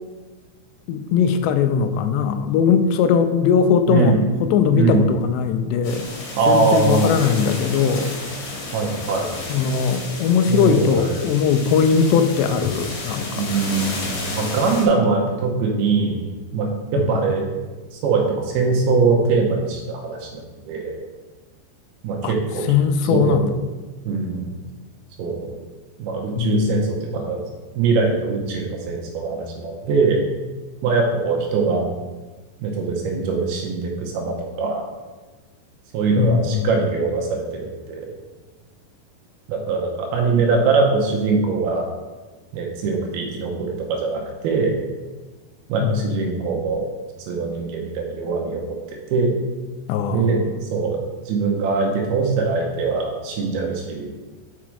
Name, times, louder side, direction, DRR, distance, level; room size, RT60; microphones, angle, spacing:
voice 1, 0.9-4.1 4.4-6.1 6.5-8.1 9.5-13.5 17.0-17.1 22.2-22.3 22.7-23.5 26.4-26.9 36.2-36.7 45.8-46.0 49.9-50.4, left 7 dB, 90° left, 9 dB, 2.7 m, -19 dB
voice 2, 3.9-4.2 4.7-5.1 6.4-7.1 8.7-9.3 10.5-11.2 13.4-16.2 16.5-17.5 17.9-20.4 20.7-21.0 22.0-22.7 23.1-23.5 24.1-24.4 25.2-25.5 26.0-27.4 27.8-30.2 30.8-31.9 32.6-34.8 35.9-38.1 39.5-41.9 42.5-44.7 45.7-46.9 47.2-48.6 49.1-49.3 50.1-51.0 51.3-54.1, right 4 dB, 75° right, 1 dB, 2.6 m, -22 dB
sound 1, 5.8-14.9, left 2 dB, 55° left, 2.8 m, -32 dB
6.1 x 5.8 x 4.7 m, 1.2 s
omnidirectional pair, 4.9 m